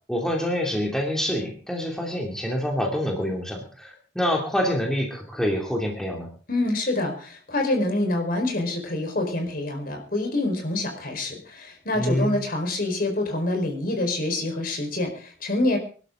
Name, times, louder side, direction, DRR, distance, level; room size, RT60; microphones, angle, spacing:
voice 1, 0.1-6.3 11.9-12.3, equal, 5° left, 0 dB, 2.7 m, -26 dB
voice 2, 6.5-15.8, left 2 dB, 50° left, 3 dB, 4.6 m, -26 dB
23.5 x 12.5 x 3.8 m, 0.40 s
head